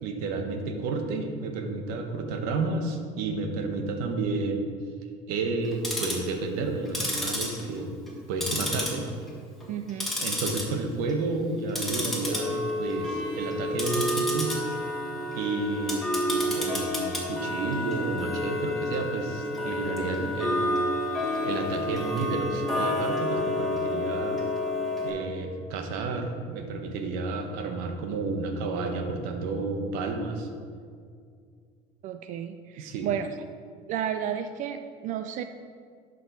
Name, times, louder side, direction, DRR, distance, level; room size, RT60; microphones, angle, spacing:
voice 1, 0.0-4.6 5.3-7.9 8.3-9.1 10.2-14.6 15.3-20.9 21.4-24.4 25.0-30.5 32.8-33.1, right 3 dB, 75° right, 5 dB, 1.1 m, -31 dB
Tick-tock, 5.6-6.3 6.8-8.1 8.4-9.3 9.6-10.6 11.0-11.3 11.7-25.1, left 1 dB, ahead, 2.1 m, -29 dB
voice 2, 9.7-10.1 32.0-33.3 33.9-35.4, right 9 dB, 55° right, 9 dB, 0.4 m, -32 dB
11.5 x 5.3 x 4.1 m, 2.2 s
supercardioid pair, 115°, 16 cm